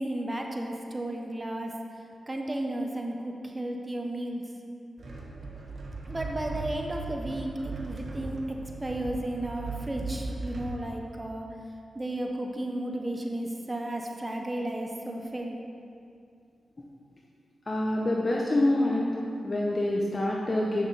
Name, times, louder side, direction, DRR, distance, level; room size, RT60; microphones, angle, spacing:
voice 1, 0.0-1.7 2.3-4.4 6.0-8.4 8.6-11.5 11.9-15.6, right 1 dB, 25° right, 2 dB, 0.9 m, -33 dB
sound 1, 5.0-10.8, right 3 dB, 60° right, 1.1 m, -38 dB
voice 2, 17.7-19.1 19.4-20.9, left 1 dB, 35° left, -2 dB, 0.8 m, -26 dB
8.4 x 6.1 x 4.0 m, 2.5 s
cardioid pair, 65°, 0 cm